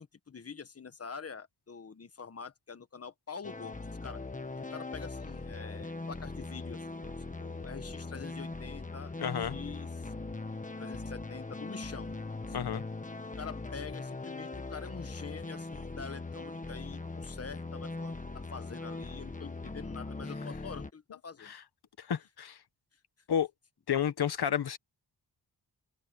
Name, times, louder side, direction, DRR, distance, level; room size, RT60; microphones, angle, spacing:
voice 1, 0.0-4.2 4.6-10.1 10.8-12.1 12.5-12.7 13.4-21.5, left 5 dB, 35° left, 1.4 m, -46 dB
sound 1, 3.4-20.9, left 3 dB, 20° left, 1.4 m, -40 dB
voice 2, 9.2-9.6 12.5-12.8 21.4-21.6 22.0-22.6 23.3-23.5 23.9-24.8, left 8 dB, 65° left, 1.4 m, -31 dB
open air
wide cardioid pair, 130°, 41 cm